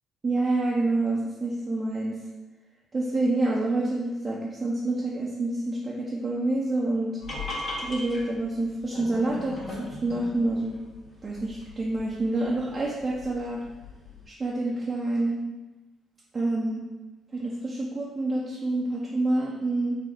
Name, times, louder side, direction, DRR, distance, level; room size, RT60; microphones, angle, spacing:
voice 1, 0.2-2.2 2.9-7.2 7.9-10.9 11.2-13.6 14.3-15.4 16.3-16.8 17.3-20.0, right 2 dB, 35° right, -5 dB, 0.7 m, -27 dB
sound 1, 7.2-14.2, left 2 dB, 45° left, 1.2 m, -39 dB
4.3 x 2.4 x 3.8 m, 1.1 s
hypercardioid pair, 45°, 0 cm